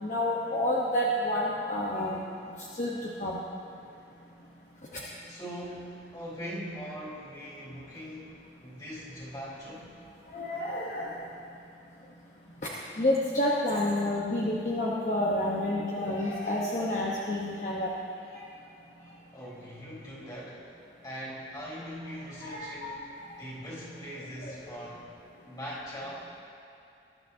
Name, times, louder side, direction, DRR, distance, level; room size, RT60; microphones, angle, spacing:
voice 1, 0.0-2.2 2.7-3.4 10.3-11.2 13.0-17.9 18.3-18.4 22.4-23.0 24.4-24.5, left 1 dB, 45° left, -5 dB, 1.1 m, -29 dB
voice 2, 5.3-10.0 19.3-20.7 21.0-25.1 25.4-26.4, equal, 25° left, -7 dB, 3.6 m, -41 dB
20.5 x 12.0 x 2.8 m, 2.6 s
head